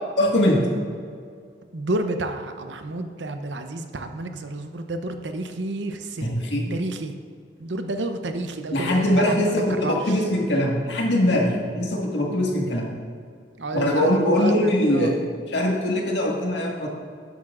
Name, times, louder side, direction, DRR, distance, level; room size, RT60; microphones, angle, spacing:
voice 1, 0.2-0.6 6.2-6.7 8.7-12.9 13.7-15.2 15.5-16.9, left 1 dB, 80° left, -1 dB, 1.8 m, -22 dB
voice 2, 1.7-6.4 6.7-7.1 7.6-9.5 9.8-9.9 13.6-15.1, right 2 dB, 90° right, 7 dB, 0.8 m, -30 dB
12.0 x 9.0 x 2.5 m, 2.2 s
head